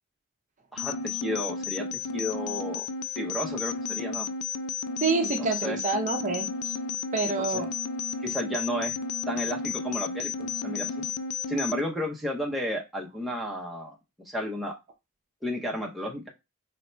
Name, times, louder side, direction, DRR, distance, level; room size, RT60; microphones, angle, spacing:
voice 1, 0.7-2.9 3.1-4.3 5.4-5.8 7.5-7.6 8.2-9.0 9.3-11.0 11.5-14.0 14.3-14.7 15.4-16.2, equal, ahead, -1 dB, 0.7 m, -32 dB
sound 1, 0.8-11.8, left 5 dB, 70° left, 0.4 m, -33 dB
Organ, 1.2-12.2, left 4 dB, 40° left, 0.9 m, -48 dB
voice 2, 5.0-6.7 7.1-7.7, right 4 dB, 35° right, 4 dB, 0.6 m, -27 dB
3.2 x 2.7 x 4.3 m, 0.24 s
head